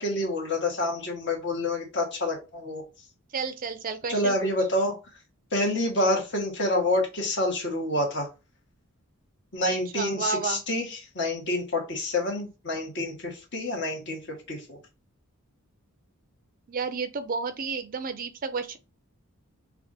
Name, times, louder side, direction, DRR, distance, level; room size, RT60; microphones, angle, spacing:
voice 1, 0.0-2.8 4.1-5.0 5.5-8.3 9.5-14.2 14.5-14.8, left 1 dB, 55° left, 1.5 m, -27 dB
voice 2, 3.3-4.5 9.9-10.6 16.7-18.8, right 5 dB, 40° right, 0.4 m, -31 dB
5.8 x 2.4 x 2.7 m
head